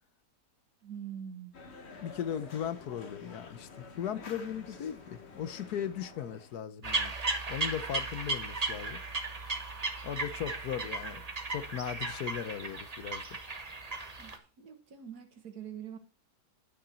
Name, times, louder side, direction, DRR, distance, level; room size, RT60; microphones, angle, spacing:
voice 1, 0.8-1.6 14.2-16.0, right 8 dB, 65° right, 2.0 m, -44 dB
sound 1, 1.5-6.6, left 4 dB, 40° left, 1.4 m, -49 dB
voice 2, 2.0-7.1 7.5-9.0 10.0-11.2 11.5-13.4, left 9 dB, 70° left, 1.3 m, -37 dB
sound 2, 6.8-14.4, right 3 dB, 25° right, 1.1 m, -36 dB
12.0 x 6.5 x 4.4 m
omnidirectional pair, 1.8 m